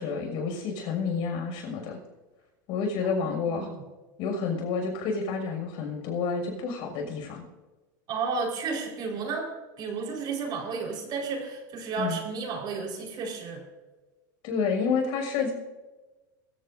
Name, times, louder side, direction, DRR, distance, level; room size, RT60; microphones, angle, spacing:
voice 1, 0.0-2.0 2.7-3.7 4.2-7.4 12.0-12.2 14.4-15.5, left 5 dB, 55° left, 2 dB, 6.3 m, -29 dB
voice 2, 3.0-3.8 8.1-9.5 9.8-13.6, right 4 dB, 45° right, 0 dB, 4.6 m, -32 dB
23.0 x 15.5 x 2.7 m, 1.2 s
supercardioid pair, 130°, 11 cm